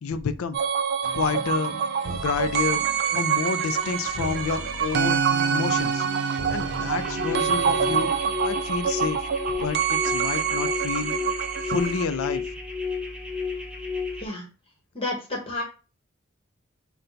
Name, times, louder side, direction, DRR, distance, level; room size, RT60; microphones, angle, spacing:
voice 1, 0.0-0.6 1.1-1.8 2.1-2.8 3.1-5.2 5.5-6.1 6.5-8.1 8.4-9.2 9.6-11.2 11.7-12.4, left 5 dB, 85° left, 11 dB, 0.4 m, -29 dB
sound 1, 0.5-12.0, right 7 dB, 50° right, 0.3 m, -26 dB
sound 2, 1.0-8.2, right 2 dB, 75° right, 0.8 m, -36 dB
sound 3, 7.0-14.2, left 4 dB, 5° right, 0.7 m, -32 dB
voice 2, 14.9-15.6, left 2 dB, 25° left, 0 dB, 1.2 m, -30 dB
5.6 x 2.2 x 3.8 m, 0.33 s
head